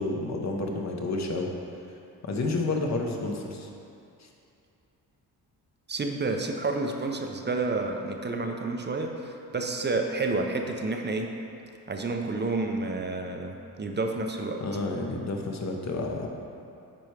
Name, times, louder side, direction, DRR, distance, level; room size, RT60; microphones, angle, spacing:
voice 1, 0.0-1.5 2.2-3.7 14.6-16.3, left 2 dB, 45° left, 1 dB, 1.0 m, -30 dB
voice 2, 5.9-11.3 11.9-14.6, right 3 dB, 25° right, 3 dB, 0.6 m, -30 dB
9.0 x 4.5 x 3.3 m, 2.6 s
cardioid pair, 75°, 40 cm